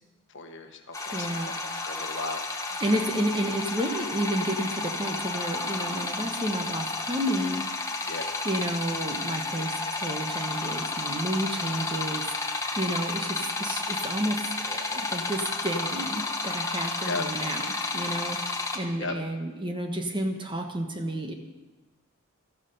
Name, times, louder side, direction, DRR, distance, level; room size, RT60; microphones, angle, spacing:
voice 1, 0.3-3.0 8.1-8.3 11.5-12.2 17.0-17.3 19.0-19.1, left 3 dB, 55° left, 5 dB, 1.4 m, -37 dB
sound 1, 0.9-18.8, left 3 dB, 15° left, 1.2 m, -32 dB
voice 2, 1.1-1.5 2.8-7.6 8.0-8.2 8.4-21.3, right 1 dB, 20° right, 4 dB, 1.2 m, -31 dB
13.5 x 13.5 x 5.5 m, 1.2 s
head